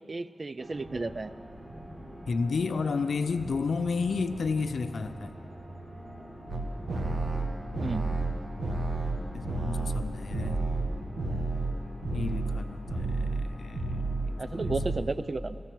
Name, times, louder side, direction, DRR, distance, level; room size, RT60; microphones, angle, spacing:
voice 1, 0.1-1.3 7.8-8.0 14.4-15.6, right 3 dB, 40° right, 14 dB, 0.3 m, -33 dB
sound 1, 0.6-15.0, right 1 dB, 60° right, 2.9 m, -45 dB
voice 2, 2.3-5.4 9.3-10.6 12.1-14.7, left 4 dB, 85° left, 10 dB, 0.5 m, -32 dB
sound 2, 6.5-11.8 12.0-12.6 12.9-13.5 13.7-14.3 14.6-15.0, right 2 dB, 85° right, 1.5 m, -30 dB
15.0 x 14.0 x 4.5 m, 2.7 s
wide cardioid pair, 100°, 0 cm